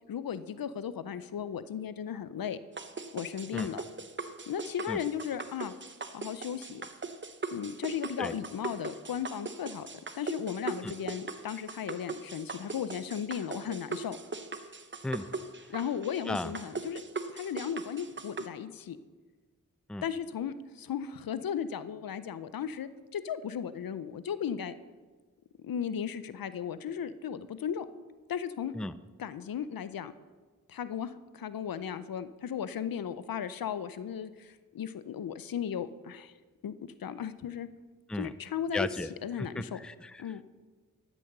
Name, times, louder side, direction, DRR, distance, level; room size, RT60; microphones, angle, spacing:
voice 1, 0.1-2.6 3.1-3.8 4.5-5.7 6.1-6.9 7.5-9.9 10.2-14.2 15.7-17.0 17.3-19.0 20.0-24.7 25.6-27.9 28.3-28.7 29.2-30.1 30.7-36.3 36.6-36.7 37.0-37.7 38.1-38.9 39.2-39.8 40.2-40.4, left 8 dB, 80° left, 14 dB, 0.6 m, -36 dB
sound 1, 2.8-18.5, right 4 dB, 35° right, 0.8 m, -40 dB
voice 2, 38.7-39.1 39.4-40.2, left 2 dB, 5° left, 14 dB, 0.4 m, -35 dB
12.5 x 6.3 x 6.6 m, 1.4 s
cardioid pair, 45°, 35 cm